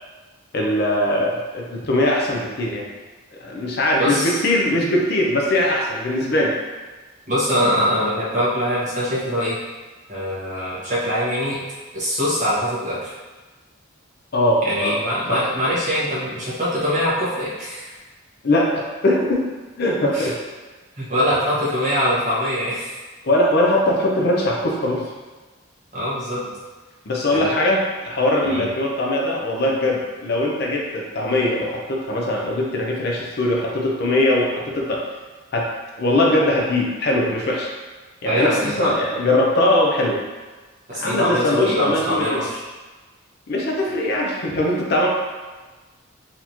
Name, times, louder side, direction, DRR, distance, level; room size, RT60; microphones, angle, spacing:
voice 1, 0.5-2.8 3.4-6.6 14.3-15.0 15.3-15.4 18.4-19.5 19.8-20.3 21.2-21.3 23.2-25.1 27.1-35.0 35.5-35.7 36.0-37.7 38.2-40.2 40.9-42.4 43.5-45.1, left 1 dB, 50° left, -1 dB, 0.5 m, -21 dB
voice 2, 4.0-4.4 7.3-9.6 10.1-11.6 11.9-13.1 14.6-17.9 20.1-20.3 21.0-22.9 25.9-26.4 27.3-27.5 28.4-28.7 38.2-38.9 40.9-42.6, equal, 35° right, -9 dB, 1.2 m, -23 dB
4.1 x 2.8 x 2.9 m, 1.3 s
head